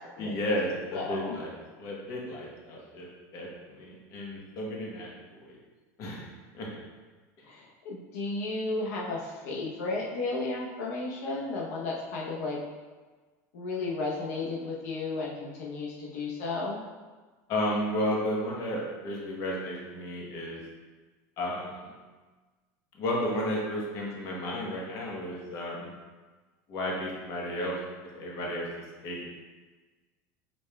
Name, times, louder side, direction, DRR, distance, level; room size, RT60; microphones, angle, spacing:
voice 1, 0.2-1.5 1.8-3.1 3.3-5.1 5.5-5.6 6.0-6.7 17.5-20.6 21.4-21.9 23.0-25.9 26.7-27.8 28.1-28.7 29.0-29.3, left 1 dB, 40° left, -3 dB, 1.0 m, -33 dB
voice 2, 0.9-1.4 7.4-12.6 13.5-16.8, left 3 dB, 80° left, -4 dB, 0.8 m, -33 dB
5.2 x 4.3 x 2.2 m, 1.3 s
supercardioid pair, 155°, 8 cm